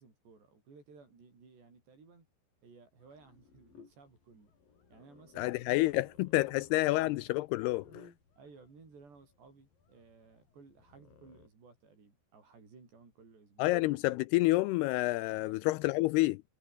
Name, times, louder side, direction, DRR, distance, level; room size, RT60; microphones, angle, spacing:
voice 1, 0.0-2.3 2.6-4.5 4.9-6.0 6.4-7.3 8.4-13.7 15.2-15.9, right 4 dB, 75° right, 10.0 m, -58 dB
sound 1, 3.0-11.5, left 5 dB, 55° left, 6.3 m, -60 dB
voice 2, 5.4-7.9 13.6-16.4, left 20 dB, 80° left, 2.4 m, -29 dB
omnidirectional pair, 5.0 m